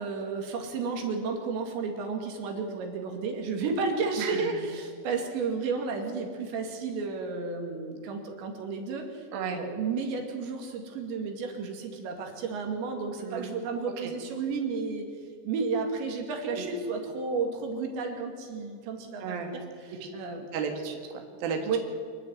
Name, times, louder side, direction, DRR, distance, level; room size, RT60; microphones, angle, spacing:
voice 1, 0.0-15.1 15.4-19.3 20.1-20.5 21.7-21.8, right 4 dB, 75° right, 3 dB, 4.5 m, -32 dB
voice 2, 4.2-4.6 9.3-9.6 13.2-13.5 14.0-14.1 16.5-16.6 19.2-19.5 19.9-20.1 20.5-21.8, right 5 dB, 60° right, 3 dB, 3.4 m, -34 dB
26.0 x 11.5 x 9.4 m, 2.2 s
omnidirectional pair, 5.3 m